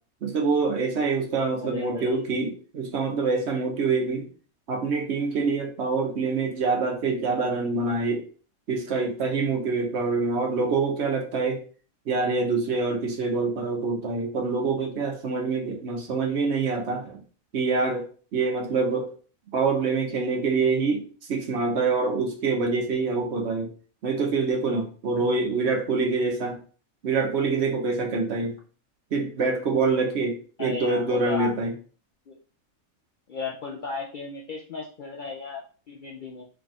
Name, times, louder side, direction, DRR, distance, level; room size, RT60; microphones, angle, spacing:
voice 1, 0.2-4.3 4.7-8.2 8.7-11.6 12.1-17.2 17.5-19.1 19.5-23.7 24.0-26.6 27.0-28.5 29.1-31.7, right 4 dB, 55° right, 2 dB, 1.0 m, -25 dB
voice 2, 1.6-2.3 30.6-31.5 32.3-32.4 33.3-36.4, left 4 dB, 70° left, -1 dB, 0.4 m, -35 dB
3.5 x 2.3 x 4.0 m, 0.39 s
omnidirectional pair, 1.4 m